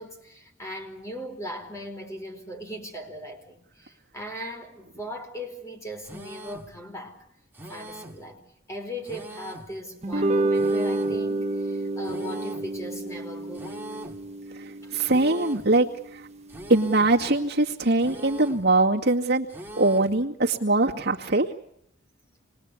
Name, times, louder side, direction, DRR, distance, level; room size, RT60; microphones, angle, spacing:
voice 1, 0.0-7.2 7.7-14.1, equal, 15° left, 4.6 m, -39 dB
sound 1, 6.0-6.7 7.5-8.3 9.0-9.8 10.5-11.2 12.0-12.8 13.5-14.3 15.0-15.8 16.5-17.2 18.0-18.7 19.5-20.2, right 1 dB, 10° right, 2.2 m, -41 dB
sound 2, 10.0-16.5, right 2 dB, 35° right, 1.0 m, -29 dB
voice 2, 14.9-15.9 16.7-19.5 19.8-21.5, right 2 dB, 55° right, 2.1 m, -22 dB
27.0 x 22.0 x 8.4 m
head